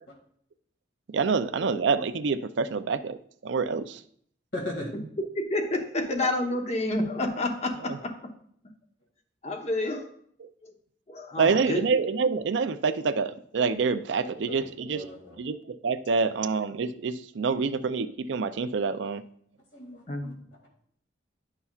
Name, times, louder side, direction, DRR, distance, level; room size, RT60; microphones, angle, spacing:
voice 1, 1.1-3.2 3.4-4.0 7.8-8.0 10.4-10.5 11.4-15.1 15.4-19.2, right 5 dB, 70° right, 12 dB, 0.4 m, -27 dB
voice 2, 4.5-4.9 14.2-14.6 14.9-15.4 17.5-17.6 19.7-20.3, left 1 dB, 65° left, -2 dB, 2.0 m, -37 dB
voice 3, 5.3-8.1 9.4-10.1 10.6-10.7 11.1-11.8 20.1-20.3, left 2 dB, 35° left, 4 dB, 0.9 m, -29 dB
10.5 x 5.6 x 2.4 m, 0.64 s
head